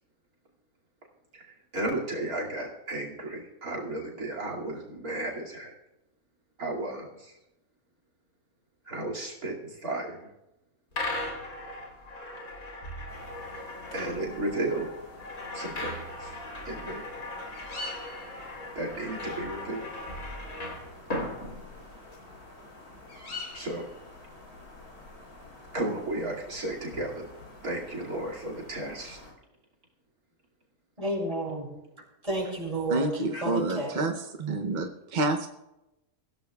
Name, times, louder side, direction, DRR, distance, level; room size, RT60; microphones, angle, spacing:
voice 1, 1.7-5.7 6.6-7.4 8.9-10.3 13.9-14.9 15.5-16.4 16.6-17.2 18.7-19.9 23.5-23.9 25.7-27.2 27.6-29.2 33.3-33.4, right 2 dB, 80° right, 0 dB, 3.1 m, -34 dB
sound 1, 10.9-22.2, left 1 dB, 70° left, 4.2 m, -38 dB
sound 2, 13.1-29.3, left 2 dB, 90° left, 4.5 m, -47 dB
voice 2, 31.0-31.7 32.2-34.0, right 1 dB, 25° right, -4 dB, 6.5 m, -31 dB
voice 3, 32.9-34.1 34.4-34.9 35.1-35.5, right 2 dB, 40° right, 4 dB, 0.8 m, -28 dB
24.0 x 16.0 x 2.4 m, 0.93 s
omnidirectional pair, 1.5 m